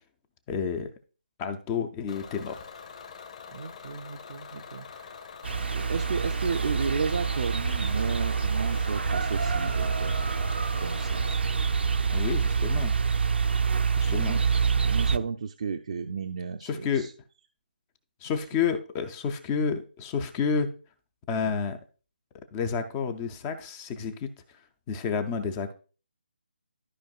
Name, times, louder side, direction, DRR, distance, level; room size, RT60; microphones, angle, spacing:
voice 1, 0.5-0.9 1.4-2.6 12.1-13.0 14.0-14.4 16.6-17.1 18.2-20.7 21.3-21.8 22.5-24.3 24.9-25.7, left 6 dB, 15° left, 9 dB, 0.5 m, -30 dB
Bus / Engine, 2.1-11.4, left 6 dB, 40° left, 1.1 m, -45 dB
voice 2, 3.5-5.2 5.6-10.2 10.5-11.4 14.1-14.5 14.8-17.1, right 5 dB, 40° right, 4 dB, 0.5 m, -33 dB
sound 1, 5.4-15.2, right 5 dB, 80° right, 0.6 m, -26 dB
13.5 x 5.1 x 2.4 m, 0.37 s
hypercardioid pair, 170°, 6 cm